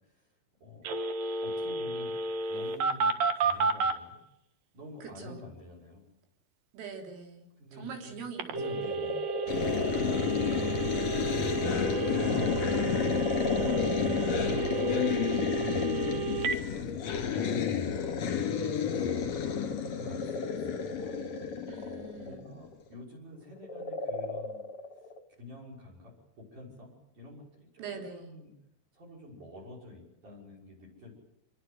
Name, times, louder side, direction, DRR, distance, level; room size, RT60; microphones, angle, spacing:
Telephone, 0.8-4.0 8.4-16.6, right 5 dB, 65° right, 2.5 m, -32 dB
voice 1, 1.4-2.2 2.5-4.2 4.7-6.0 7.6-8.2 8.5-9.2 13.4-21.2 22.2-24.6 25.4-27.4 27.7-28.5 28.9-31.1, left 2 dB, 40° right, 2 dB, 7.5 m, -48 dB
voice 2, 5.0-5.4 6.7-9.2 21.7-22.4 27.8-28.3, right 5 dB, 85° right, 2 dB, 6.2 m, -44 dB
sound 1, 8.6-10.7 11.2-16.0 16.9-23.0 23.6-25.2, left 2 dB, 75° left, 0.9 m, -38 dB
sound 2, 9.5-22.4, left 7 dB, 45° left, 2.7 m, -31 dB
27.0 x 22.0 x 8.0 m, 0.84 s
omnidirectional pair, 5.7 m